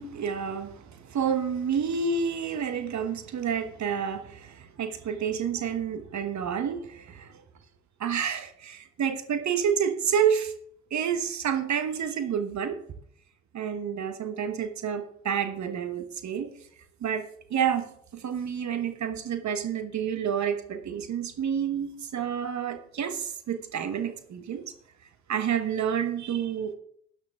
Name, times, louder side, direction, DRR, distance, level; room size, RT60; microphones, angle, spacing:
voice 1, 0.0-7.4 8.0-10.5 10.9-12.8 13.5-16.5 17.0-17.2 17.5-17.9 18.1-24.7 25.3-26.7, right 7 dB, 55° right, 9 dB, 1.2 m, -29 dB
13.0 x 9.5 x 3.6 m, 0.65 s
hypercardioid pair, 50°, 33 cm